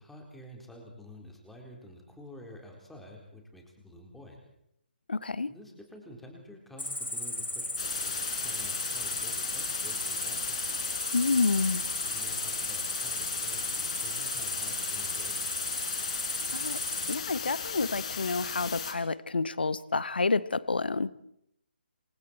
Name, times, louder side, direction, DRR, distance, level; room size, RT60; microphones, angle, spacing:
voice 1, 0.0-4.4 5.5-8.2 8.4-10.6 12.0-15.6, left 1 dB, ahead, 0 dB, 4.1 m, -49 dB
voice 2, 5.1-5.5 11.1-11.8 16.5-16.8 17.1-21.1, left 3 dB, 60° left, 17 dB, 1.1 m, -29 dB
Cricket, 6.8-17.2, left 1 dB, 80° left, 3.0 m, -35 dB
sound 1, 7.8-18.9, left 7 dB, 35° left, 4.2 m, -36 dB
28.0 x 25.0 x 4.5 m, 0.75 s
figure-of-eight pair, 140°, 6 cm